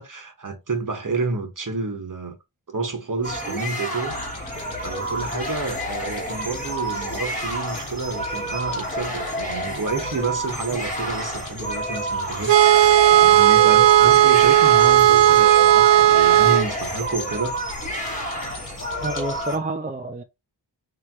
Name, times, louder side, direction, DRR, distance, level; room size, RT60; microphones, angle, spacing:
voice 1, 0.0-2.4 2.7-4.2 4.8-12.6 13.1-17.5 18.0-18.1, right 4 dB, 45° right, 1.2 m, -29 dB
sound 1, 3.2-19.6, right 1 dB, 15° left, 1.3 m, -30 dB
sound 2, 4.1-19.4, left 4 dB, 90° left, 1.5 m, -41 dB
sound 3, 12.5-16.7, right 12 dB, 75° right, 0.5 m, -14 dB
voice 2, 19.0-20.2, right 2 dB, 20° right, 0.5 m, -28 dB
3.3 x 3.0 x 3.6 m
wide cardioid pair, 60°, 45 cm